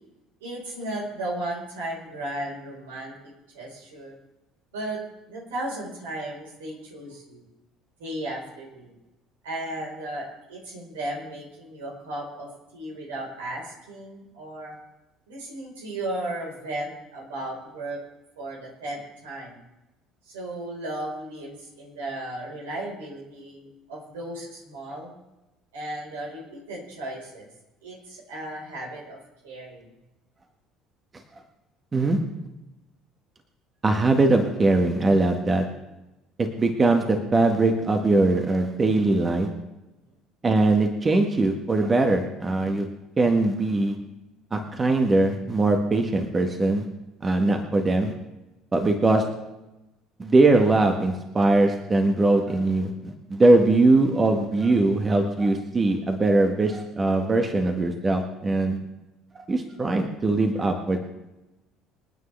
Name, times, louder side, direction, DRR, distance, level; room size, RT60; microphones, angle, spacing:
voice 1, 0.4-3.1 3.5-4.2 4.7-5.0 5.3-7.4 8.0-8.9 9.4-14.7 15.3-18.0 18.4-19.6 20.3-25.1 25.7-27.5 27.8-29.2 29.4-29.9, right 1 dB, 75° right, -2 dB, 4.7 m, -35 dB
voice 2, 33.8-35.6 36.4-39.5 40.4-42.9 43.2-44.0 44.5-46.9 47.2-48.1 48.7-49.2 50.2-58.8 59.5-61.0, right 2 dB, 25° right, 4 dB, 1.8 m, -21 dB
26.5 x 9.5 x 3.5 m, 0.99 s
figure-of-eight pair, 60°, 0 cm